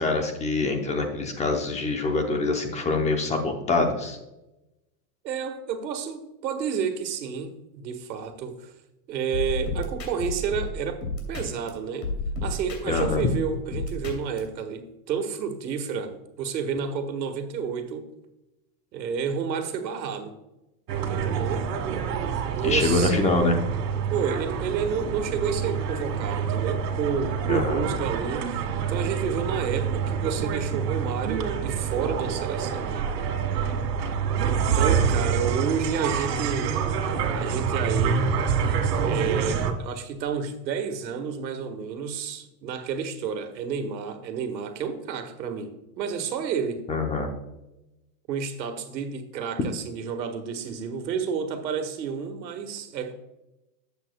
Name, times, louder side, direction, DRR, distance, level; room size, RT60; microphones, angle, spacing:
voice 1, 0.0-4.2 12.9-13.2 22.6-23.6 27.5-27.8 46.9-47.3, left 3 dB, 15° left, 4 dB, 0.7 m, -25 dB
voice 2, 5.2-8.7 9.1-12.1 12.4-18.1 18.9-20.3 21.1-21.7 22.5-23.3 24.1-32.9 34.4-36.7 37.3-38.3 39.0-46.8 48.3-53.1, right 6 dB, 85° right, 7 dB, 1.6 m, -30 dB
sound 1, 9.3-11.7 12.0-14.4, left 2 dB, 80° left, 2.9 m, -32 dB
sound 2, 20.9-39.7, right 6 dB, 70° right, 1.8 m, -27 dB
11.5 x 8.0 x 2.2 m, 0.94 s
supercardioid pair, 140°, 50 cm